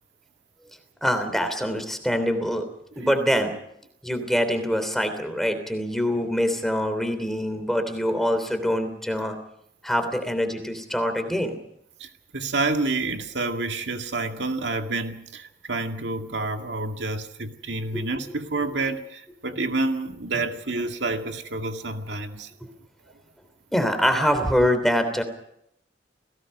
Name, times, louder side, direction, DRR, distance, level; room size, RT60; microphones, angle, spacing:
voice 1, 1.0-2.7 3.0-3.5 4.0-9.3 9.8-11.6 17.9-18.0 18.6-18.7 23.7-25.2, equal, ahead, 7 dB, 3.2 m, -24 dB
voice 2, 12.0-22.5, right 3 dB, 75° right, 5 dB, 2.1 m, -29 dB
29.5 x 18.0 x 5.5 m, 0.76 s
head